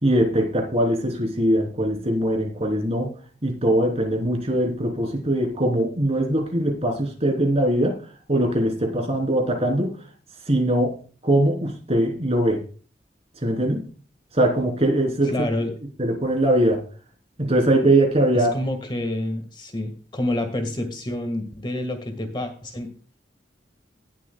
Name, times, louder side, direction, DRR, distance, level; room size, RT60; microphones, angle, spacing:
voice 1, 0.0-3.1 3.4-8.0 8.3-9.9 10.5-10.9 11.2-12.6 13.4-13.8 14.3-15.3 16.0-16.8 17.4-18.5, right 1 dB, 35° right, 2 dB, 3.4 m, -21 dB
voice 2, 15.2-15.7 18.3-22.9, left 1 dB, 25° left, 6 dB, 1.7 m, -28 dB
18.0 x 7.9 x 2.3 m, 0.39 s
head